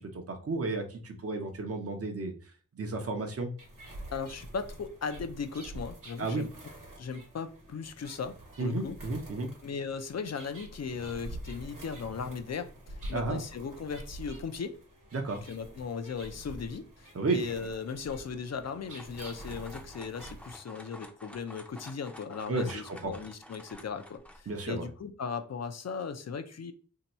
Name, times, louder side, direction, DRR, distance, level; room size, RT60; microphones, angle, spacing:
voice 1, 0.0-2.3 2.8-3.5 6.2-6.4 8.6-9.5 13.1-13.4 15.1-15.4 17.1-17.4 22.5-23.1 24.5-24.9, right 3 dB, 45° right, 0.7 m, -32 dB
sound 1, 3.6-20.6, right 1 dB, 75° right, 1.1 m, -47 dB
voice 2, 4.1-6.5 7.0-9.0 9.6-14.8 15.5-26.7, left 5 dB, 55° left, 0.5 m, -37 dB
sound 2, 18.6-24.4, equal, 5° left, 0.5 m, -50 dB
2.7 x 2.2 x 4.1 m
wide cardioid pair, 70°, 32 cm